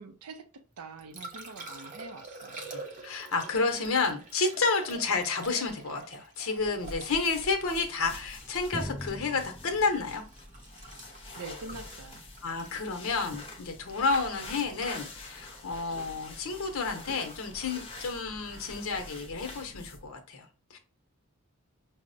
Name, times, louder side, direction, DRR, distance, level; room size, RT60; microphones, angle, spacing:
voice 1, 0.0-2.7 11.3-12.2, right 3 dB, 90° right, 0.5 m, -45 dB
Liquid, 0.7-16.8 19.6-19.8, right 3 dB, 35° right, 0.6 m, -48 dB
voice 2, 2.7-10.2 12.4-20.8, left 4 dB, 65° left, 0.8 m, -30 dB
sound 1, 6.6-20.1, left 2 dB, 25° left, 0.7 m, -46 dB
Drum, 8.7-12.2, left 1 dB, 10° left, 0.3 m, -43 dB
5.7 x 2.1 x 2.5 m
head